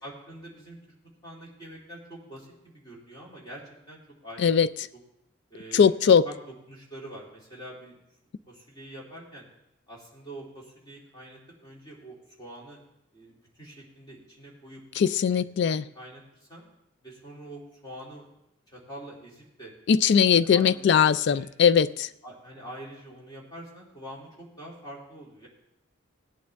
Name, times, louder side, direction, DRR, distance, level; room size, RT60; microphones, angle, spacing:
voice 1, 0.0-0.8 1.2-3.6 3.9-4.6 5.5-6.0 6.2-6.4 6.7-8.0 8.5-9.5 9.9-12.8 13.1-14.8 15.3-16.2 16.5-16.7 17.0-18.3 18.7-19.7 20.3-21.5 22.0-25.5, right 1 dB, 20° left, -4 dB, 2.8 m, -45 dB
voice 2, 5.7-6.2 15.0-15.8 19.9-22.1, left 7 dB, 55° left, 16 dB, 0.3 m, -20 dB
16.5 x 8.7 x 3.5 m, 0.86 s
head